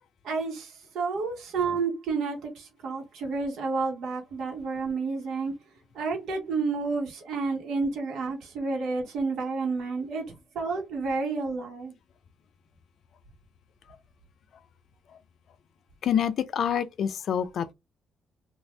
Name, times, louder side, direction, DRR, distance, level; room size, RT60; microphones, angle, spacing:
voice 1, 0.2-5.5 5.9-11.9, right 4 dB, 80° right, 1.7 m, -30 dB
voice 2, 16.0-17.7, left 8 dB, 65° left, 0.5 m, -27 dB
3.1 x 2.6 x 3.2 m
cardioid pair, 90°, 0 cm